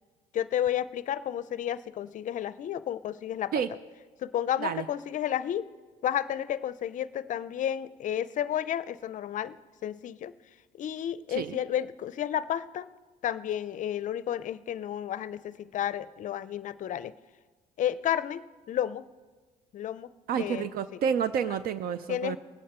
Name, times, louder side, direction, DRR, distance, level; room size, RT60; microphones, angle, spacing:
voice 1, 0.3-3.5 4.2-5.7 6.0-9.6 9.8-10.3 10.8-12.9 13.2-17.1 17.8-18.4 18.7-19.0 19.7-21.0 22.1-22.4, left 10 dB, 50° left, 16 dB, 0.5 m, -31 dB
voice 2, 20.3-22.4, right 7 dB, 60° right, 13 dB, 0.5 m, -29 dB
20.5 x 8.4 x 4.4 m, 1.4 s
cardioid pair, 110°, 17 cm